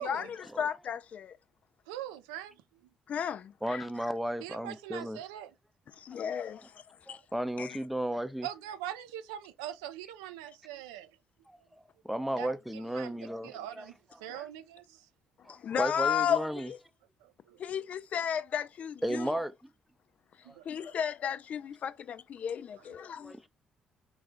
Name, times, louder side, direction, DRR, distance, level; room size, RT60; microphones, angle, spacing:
voice 1, 0.0-1.4 3.1-3.9 5.9-7.2 7.6-7.8 14.3-14.4 15.5-16.8 17.6-19.4 20.7-23.3, left 8 dB, 55° left, 0.4 m, -34 dB
voice 2, 1.9-2.6 4.4-5.5 8.4-11.1 12.4-13.1 13.4-15.0 17.2-17.6 20.4-20.9, right 12 dB, 85° right, 0.4 m, -42 dB
voice 3, 3.6-5.2 7.1-8.5 12.0-13.9 14.3-14.5 15.5-16.7 19.0-19.5 20.5-20.6 23.2-23.5, right 1 dB, 5° right, 0.6 m, -34 dB
3.9 x 2.4 x 3.5 m
hypercardioid pair, 50°, 3 cm